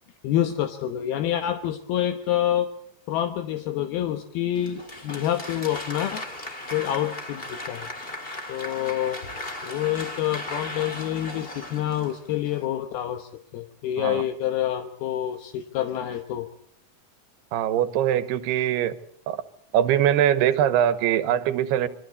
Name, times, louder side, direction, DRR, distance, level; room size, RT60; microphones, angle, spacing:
voice 1, 0.2-2.7 3.1-6.2 6.7-7.9 8.5-9.2 9.6-16.5, left 11 dB, 75° left, 7 dB, 2.9 m, -27 dB
Applause, 4.5-12.6, left 1 dB, 25° left, 1.4 m, -37 dB
voice 2, 17.5-18.9 19.3-19.4 19.7-21.9, right 10 dB, 90° right, 13 dB, 3.1 m, -22 dB
27.0 x 23.5 x 4.1 m, 0.70 s
omnidirectional pair, 4.6 m